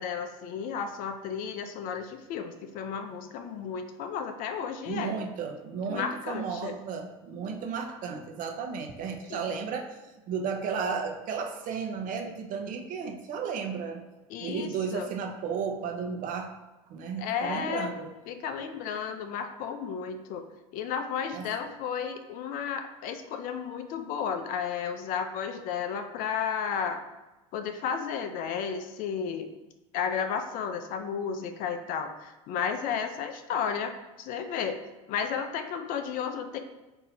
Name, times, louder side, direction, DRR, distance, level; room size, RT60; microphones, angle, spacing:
voice 1, 0.0-5.2 5.9-6.8 9.3-9.4 14.3-15.1 17.2-17.9 18.3-20.4 20.7-27.0 27.5-29.5 29.9-34.8 35.1-36.6, left 7 dB, 55° left, 7 dB, 0.5 m, -33 dB
voice 2, 4.8-10.0 10.3-14.0 14.4-16.5 16.9-18.1 21.3-21.5, right 6 dB, 50° right, 3 dB, 0.8 m, -34 dB
3.7 x 2.8 x 4.2 m, 1.1 s
hypercardioid pair, 80°, 17 cm